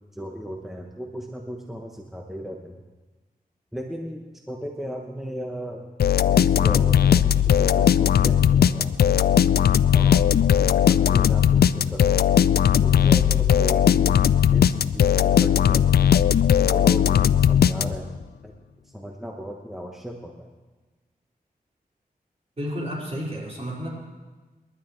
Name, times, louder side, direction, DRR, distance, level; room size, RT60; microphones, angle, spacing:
voice 1, 0.1-2.8 3.7-5.9 6.2-9.2 9.9-10.4 10.9-14.2 14.5-15.8 16.7-18.1 18.4-18.5 18.9-20.5, equal, ahead, 1 dB, 1.1 m, -36 dB
sound 1, 6.0-18.2, left 9 dB, 90° left, 0.4 m, -18 dB
voice 2, 22.6-23.9, equal, 40° right, -5 dB, 5.0 m, -31 dB
28.5 x 11.5 x 3.2 m, 1.3 s
wide cardioid pair, 95°, 16 cm